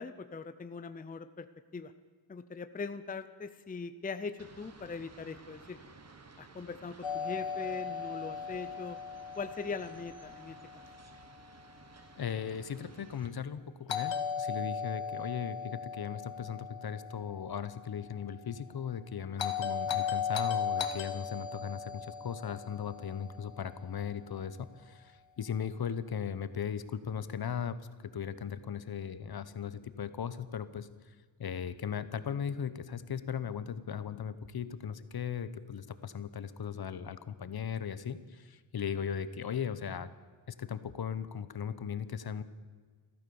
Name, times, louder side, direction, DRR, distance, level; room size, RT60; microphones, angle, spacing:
voice 1, 0.0-1.5 1.7-1.9 2.3-5.8 6.4-9.0 9.4-10.6, left 4 dB, 20° left, 11 dB, 0.6 m, -41 dB
sound 1, 4.4-13.3, right 3 dB, 35° right, 1.4 m, -55 dB
Doorbell, 7.0-11.0 13.9-18.1 19.4-23.8, left 6 dB, 80° left, 1.4 m, -37 dB
voice 2, 12.2-27.8 28.0-40.1 40.5-42.4, left 7 dB, 55° left, 14 dB, 0.9 m, -38 dB
15.0 x 13.5 x 7.0 m, 1.5 s
wide cardioid pair, 145°, 44 cm